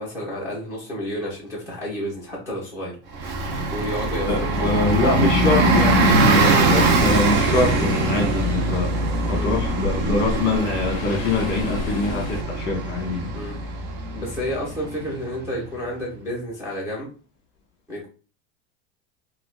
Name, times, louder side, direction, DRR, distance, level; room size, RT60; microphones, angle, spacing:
voice 1, 0.0-2.9 3.7-4.7 9.3-9.5 13.3-13.6 14.1-17.1 17.9-18.1, equal, 10° right, -5 dB, 1.1 m, -30 dB
Bus, 3.1-15.4, right 2 dB, 30° right, 0.5 m, -22 dB
voice 2, 4.3-8.9 9.3-13.4, left 3 dB, 35° left, -1 dB, 1.2 m, -24 dB
sound 1, 8.7-12.4, left 2 dB, 55° left, 0.5 m, -34 dB
3.9 x 2.5 x 2.3 m, 0.37 s
supercardioid pair, 165°, 34 cm